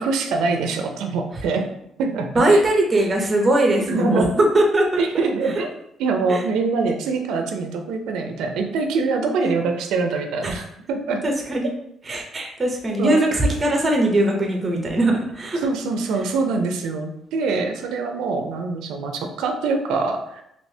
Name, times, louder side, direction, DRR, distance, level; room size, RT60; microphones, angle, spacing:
voice 1, 0.0-1.7 2.0-2.6 3.9-4.3 5.0-5.7 6.0-11.2 13.0-13.2 15.6-20.4, right 4 dB, 80° right, 4 dB, 0.4 m, -24 dB
voice 2, 2.3-5.0 6.3-6.4 9.4-9.5 10.4-10.6 11.2-11.7 12.1-15.6, right 1 dB, 15° right, 1 dB, 0.5 m, -20 dB
3.3 x 2.7 x 2.7 m, 0.76 s
cardioid pair, 175°, 0 cm